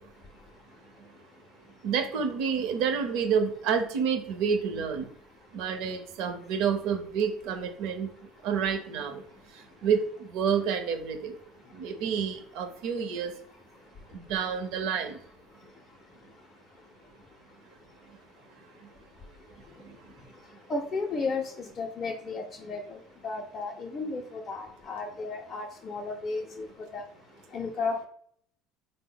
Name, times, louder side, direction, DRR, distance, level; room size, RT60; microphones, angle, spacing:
voice 1, 1.8-5.1 5.5-8.1 8.4-9.2 9.8-10.0 10.3-11.4 11.7-13.3 14.1-15.2, right 7 dB, 70° right, 7 dB, 0.6 m, -29 dB
voice 2, 20.7-26.7 26.9-27.0 27.5-28.1, left 3 dB, 30° left, 2 dB, 0.4 m, -34 dB
4.0 x 2.0 x 3.7 m, 0.62 s
cardioid pair, 135°, 0 cm